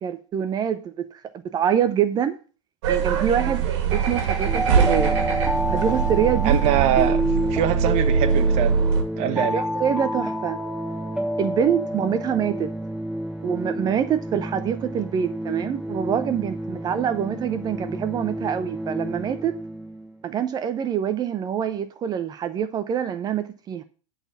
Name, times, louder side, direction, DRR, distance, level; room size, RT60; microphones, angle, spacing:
voice 1, 0.0-2.4 2.9-3.6 3.9-5.2 5.6-6.6 9.3-10.6 11.4-12.7 13.4-19.5 20.2-23.8, right 8 dB, 25° right, 0.6 m, -25 dB
sound 1, 2.8-9.0, right 6 dB, 60° right, 2.1 m, -22 dB
sound 2, 4.4-20.2, equal, 5° right, 2.5 m, -29 dB
voice 2, 6.4-7.2 7.5-8.8 9.1-9.6, right 11 dB, 40° right, 1.1 m, -23 dB
11.0 x 4.2 x 6.9 m
hypercardioid pair, 115°, 16 cm